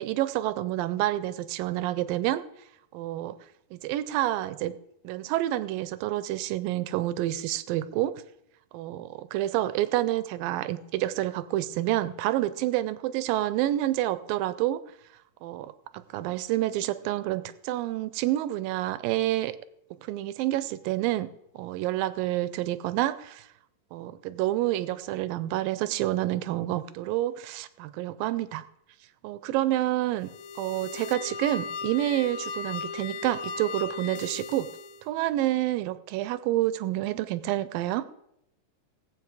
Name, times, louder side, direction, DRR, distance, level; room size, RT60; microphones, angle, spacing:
voice 1, 0.0-2.4 2.9-3.4 3.7-4.7 5.0-8.2 8.7-14.8 15.4-19.6 20.0-23.5 23.9-28.6 29.2-30.3 30.6-34.7 35.1-38.1, right 14 dB, 80° right, 15 dB, 2.2 m, -28 dB
sound 1, 30.2-35.1, left 5 dB, 80° left, 2.4 m, -37 dB
17.0 x 8.2 x 4.7 m, 0.79 s
omnidirectional pair, 4.2 m